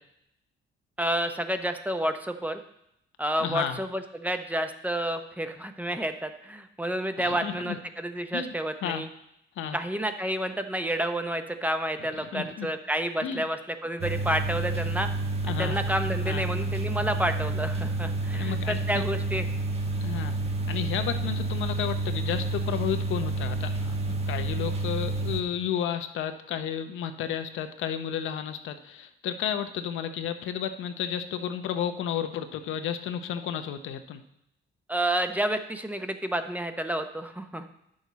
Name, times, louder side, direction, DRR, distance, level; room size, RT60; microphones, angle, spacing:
voice 1, 1.0-2.6 3.2-9.1 9.7-15.1 15.5-19.5 34.9-37.6, right 1 dB, 10° right, 7 dB, 0.7 m, -30 dB
voice 2, 3.4-3.8 7.2-7.8 8.3-8.5 8.8-9.0 9.6-9.8 12.0-12.7 13.2-13.4 15.4-15.8 16.2-16.5 18.3-19.0 20.0-20.4 20.7-34.2, left 9 dB, 80° left, 8 dB, 0.7 m, -32 dB
sound 1, 14.0-25.4, right 2 dB, 30° right, 1.1 m, -29 dB
9.6 x 6.4 x 4.1 m, 0.79 s
cardioid pair, 90°, 20 cm